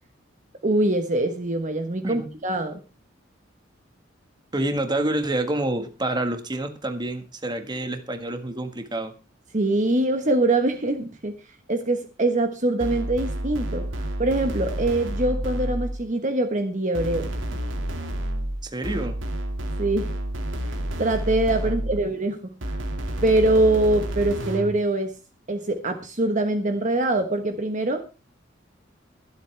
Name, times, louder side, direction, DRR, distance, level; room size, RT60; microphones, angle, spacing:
voice 1, 0.6-2.8 9.5-11.3 11.7-17.3 19.8-20.1 21.0-22.5 23.2-25.1 25.5-28.0, right 2 dB, 40° right, 6 dB, 1.3 m, -23 dB
voice 2, 4.5-9.1 18.6-19.2, right 1 dB, 25° right, 7 dB, 1.6 m, -27 dB
sound 1, 12.8-16.1 16.9-22.1 22.6-24.8, right 1 dB, 85° right, 2.2 m, -30 dB
24.0 x 8.0 x 3.4 m, 0.31 s
head